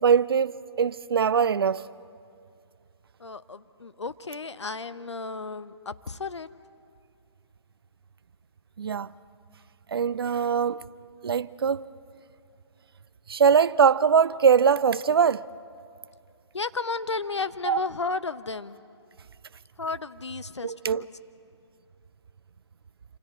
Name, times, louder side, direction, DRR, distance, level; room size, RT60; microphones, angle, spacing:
voice 1, 0.0-1.9 8.8-9.1 9.9-10.9 11.2-11.9 13.3-15.5 17.7-17.8 20.6-21.1, right 6 dB, 55° right, 0.5 m, -22 dB
voice 2, 3.2-6.5 16.5-18.8 19.8-21.1, left 4 dB, 75° left, 0.9 m, -33 dB
27.5 x 27.5 x 4.3 m
figure-of-eight pair, 140°, 15 cm